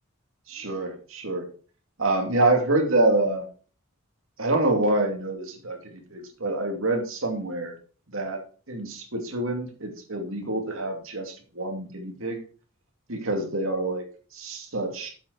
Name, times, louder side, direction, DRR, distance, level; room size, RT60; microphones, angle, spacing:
voice 1, 0.5-1.5 2.0-3.5 4.4-7.7 8.1-8.4 8.7-12.4 13.1-14.0 14.3-15.1, right 2 dB, 65° right, 3 dB, 2.5 m, -26 dB
8.1 x 7.5 x 4.7 m, 0.39 s
head